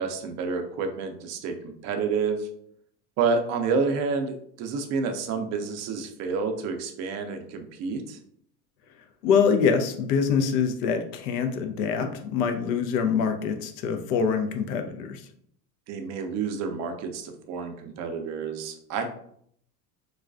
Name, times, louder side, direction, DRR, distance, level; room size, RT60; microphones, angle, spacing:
voice 1, 0.0-2.5 3.2-8.2 15.9-19.1, right 5 dB, 35° right, 5 dB, 0.4 m, -29 dB
voice 2, 9.2-15.2, left 6 dB, 70° left, 6 dB, 0.6 m, -25 dB
2.3 x 2.2 x 2.4 m, 0.67 s
hypercardioid pair, 90°, 49 cm